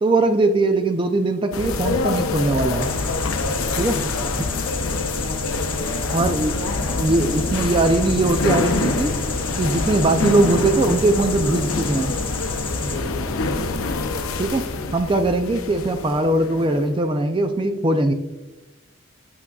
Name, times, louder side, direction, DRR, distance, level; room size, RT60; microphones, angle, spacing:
voice 1, 0.0-2.9 3.8-4.0 4.4-4.5 6.1-6.6 7.0-9.2 9.6-12.1 14.4-18.1, right 2 dB, 25° right, 7 dB, 0.4 m, -20 dB
sound 1, 1.5-16.9, left 3 dB, 85° left, 0.6 m, -25 dB
sound 2, 2.8-12.9, left 5 dB, 25° left, 0.7 m, -33 dB
voice 2, 3.5-4.1 4.5-4.8 12.8-14.3, left 1 dB, ahead, -8 dB, 2.0 m, -38 dB
7.8 x 5.9 x 2.3 m, 1.1 s
head